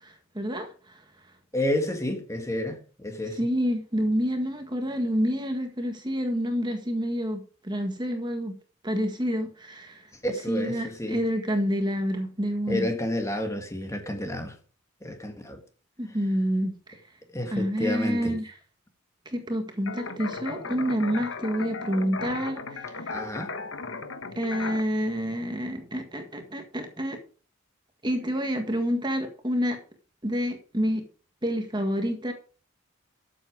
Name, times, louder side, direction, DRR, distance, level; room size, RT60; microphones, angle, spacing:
voice 1, 0.0-1.0 3.4-8.6 8.8-10.1 10.5-12.9 16.0-16.8 17.5-18.5 19.3-23.2 24.4-27.2 28.0-29.8 30.2-31.1 31.4-32.3, equal, 20° right, 1.7 m, -28 dB
voice 2, 1.5-3.4 10.2-11.2 12.7-14.6 15.0-15.6 17.3-18.4 23.1-23.5, left 1 dB, 15° left, 1.9 m, -30 dB
sound 1, 19.9-24.8, left 4 dB, 65° left, 1.2 m, -36 dB
13.0 x 8.0 x 4.9 m
head